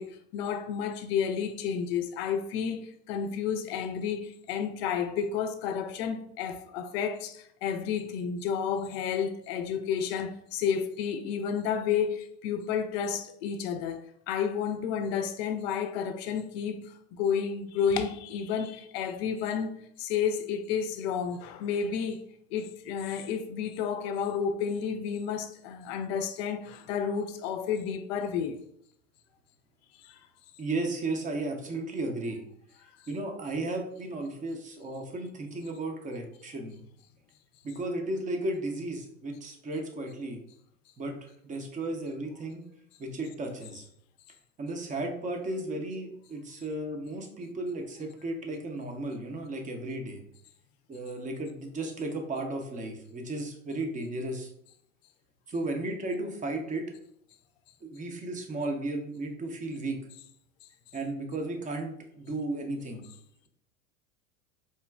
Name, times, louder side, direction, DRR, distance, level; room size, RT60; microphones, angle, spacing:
voice 1, 0.0-19.7 20.0-22.2 22.5-28.6 30.0-30.2, left 7 dB, 50° left, 0.5 m, -31 dB
voice 2, 30.6-32.4 33.1-36.8 37.6-40.4 41.0-42.6 43.0-43.8 44.6-50.2 50.9-54.5 55.5-56.9 57.8-60.0 60.9-63.0, right 2 dB, 20° right, 0.7 m, -34 dB
4.4 x 2.9 x 2.3 m
figure-of-eight pair, 85°, 41 cm